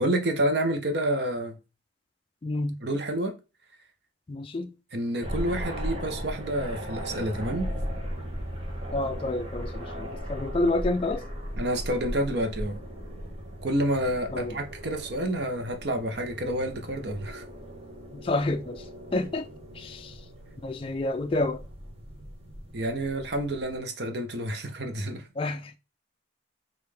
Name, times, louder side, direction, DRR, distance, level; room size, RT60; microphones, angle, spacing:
voice 1, 0.0-1.5 2.8-3.3 4.9-7.7 11.6-12.8 13.6-17.4 22.7-25.3, right 1 dB, 55° right, 0.8 m, -29 dB
voice 2, 2.4-2.8 4.3-4.7 8.9-11.2 14.3-14.6 18.1-19.5 19.7-20.2 20.6-21.6 25.4-25.8, left 2 dB, 30° left, 0.3 m, -29 dB
sound 1, 5.2-23.8, equal, 30° right, 1.0 m, -37 dB
5.4 x 2.5 x 3.3 m
head